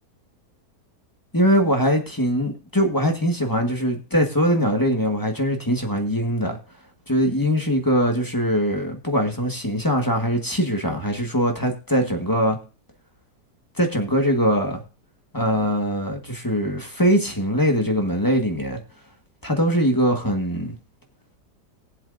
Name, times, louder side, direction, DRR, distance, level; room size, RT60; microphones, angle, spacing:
voice 1, 1.3-6.6 7.1-12.6 13.8-14.8 15.3-18.8 19.4-20.7, equal, 15° left, 3 dB, 1.4 m, -22 dB
20.5 x 7.5 x 2.6 m, 0.35 s
omnidirectional pair, 1.9 m